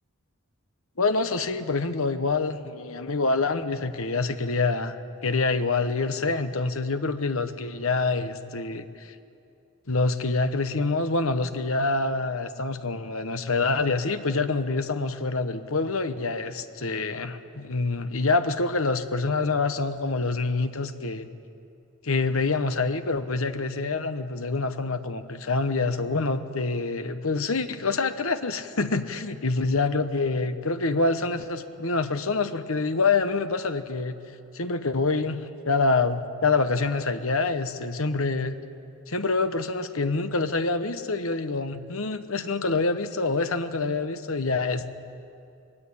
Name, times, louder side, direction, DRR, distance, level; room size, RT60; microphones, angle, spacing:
voice 1, 1.0-5.0 5.2-9.1 9.9-21.3 22.0-34.2 34.5-35.4 35.6-38.6 39.1-44.8, left 3 dB, 65° left, 10 dB, 1.1 m, -26 dB
21.5 x 20.0 x 8.6 m, 2.5 s
head